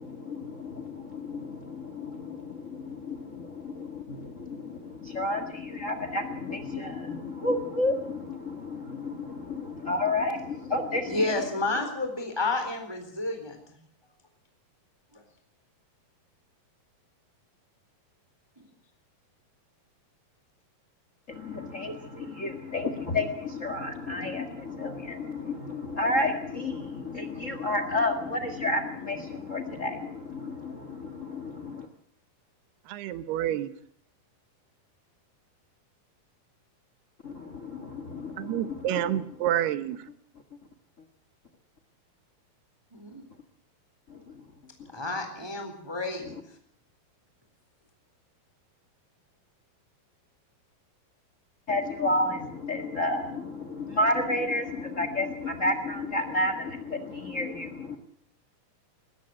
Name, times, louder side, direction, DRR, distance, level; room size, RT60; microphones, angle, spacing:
voice 1, 0.0-11.3 21.3-31.9 37.2-39.2 44.1-44.4 51.7-58.0, left 2 dB, 80° left, 9 dB, 0.7 m, -31 dB
voice 2, 11.1-13.6 15.1-15.2 42.9-43.2 44.9-46.4, left 2 dB, 5° right, 6 dB, 3.2 m, -30 dB
voice 3, 32.9-33.7 38.4-40.0, right 12 dB, 90° right, 13 dB, 3.1 m, -28 dB
21.0 x 17.5 x 7.7 m, 0.64 s
omnidirectional pair, 4.5 m